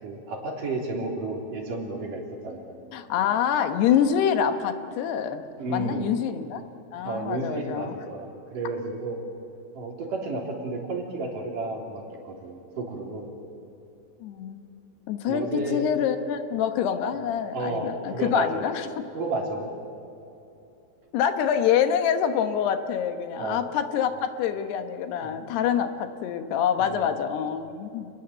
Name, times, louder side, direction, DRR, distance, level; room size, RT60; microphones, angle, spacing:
voice 1, 0.0-2.8 5.6-6.1 7.0-9.2 9.7-13.3 15.2-15.9 17.5-18.6 19.1-19.7 23.4-23.6 25.2-25.4 26.8-27.1, right 2 dB, 55° right, 0 dB, 4.7 m, -32 dB
voice 2, 2.9-5.4 5.7-6.6 6.9-7.9 14.2-14.6 15.1-18.9 21.1-28.1, left 8 dB, 80° left, 8 dB, 3.2 m, -26 dB
29.0 x 20.0 x 8.0 m, 2.8 s
omnidirectional pair, 4.7 m